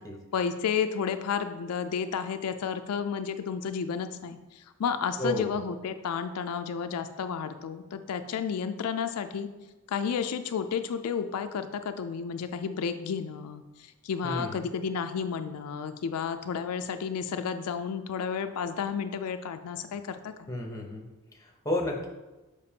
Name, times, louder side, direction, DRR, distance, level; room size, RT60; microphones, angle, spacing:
voice 1, 0.3-9.5 9.9-20.5, left 6 dB, 85° left, 8 dB, 0.4 m, -32 dB
voice 2, 5.2-5.5 14.2-14.7 20.5-21.1 21.4-22.1, left 1 dB, 15° left, 1 dB, 0.7 m, -32 dB
6.8 x 5.0 x 2.8 m, 1.1 s
head